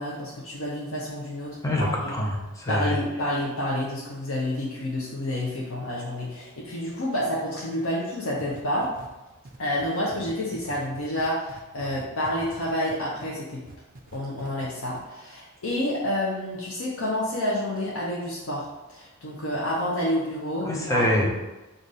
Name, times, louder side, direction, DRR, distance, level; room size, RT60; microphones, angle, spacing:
voice 1, 0.0-2.1 2.7-8.9 9.6-13.6 14.1-21.1, left 1 dB, 90° left, -5 dB, 0.8 m, -29 dB
voice 2, 1.6-3.0 20.6-21.3, left 1 dB, 15° left, -1 dB, 0.7 m, -25 dB
sound 1, 8.4-13.3 13.6-14.7 14.9-15.0, right 2 dB, 40° right, 0.5 m, -45 dB
4.9 x 2.6 x 4.1 m, 1.1 s
head